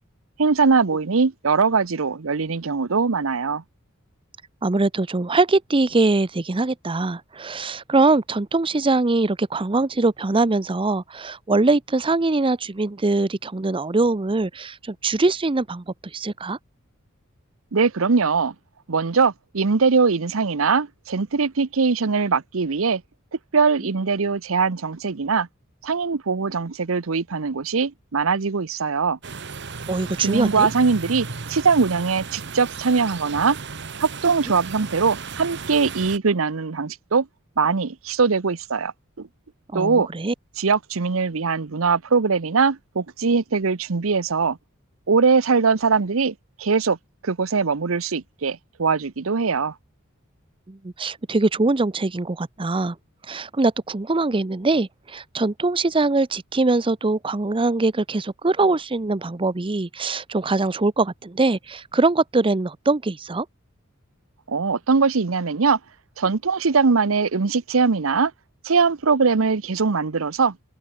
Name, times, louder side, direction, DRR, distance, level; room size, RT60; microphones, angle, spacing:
voice 1, 0.4-3.6 17.7-18.5 18.9-23.0 23.5-25.5 25.8-29.2 30.2-33.6 34.0-37.3 37.6-38.9 39.2-39.3 39.7-40.1 40.6-44.6 45.1-47.0 47.2-49.7 64.5-65.8 66.2-68.3 68.6-70.6, right 5 dB, 80° right, 0.8 m, -21 dB
voice 2, 4.6-16.6 29.9-30.7 39.7-40.3 50.7-53.0 53.2-63.5, right 3 dB, 25° right, 0.6 m, -22 dB
sound 1, 29.2-36.2, right 4 dB, 60° right, 1.6 m, -35 dB
head